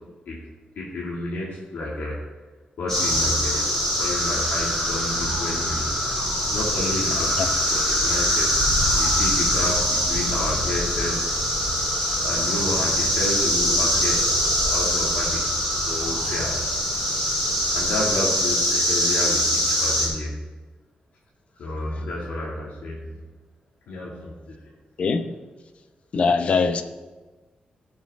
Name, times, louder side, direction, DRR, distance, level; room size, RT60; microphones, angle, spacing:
voice 1, 0.8-2.2 2.8-3.6 4.0-5.9 6.2-8.5 8.9-11.3 12.2-14.2 14.7-15.4 15.8-16.5 17.7-20.3 21.6-23.2 23.9-24.6, left 1 dB, 80° left, -5 dB, 2.1 m, -30 dB
sound 1, 2.9-20.1, equal, 20° left, 3.8 m, -23 dB
voice 2, 25.0-25.3 26.1-26.8, left 4 dB, 45° left, 8 dB, 0.7 m, -21 dB
17.0 x 6.5 x 3.5 m, 1.3 s
wide cardioid pair, 175°, 3 cm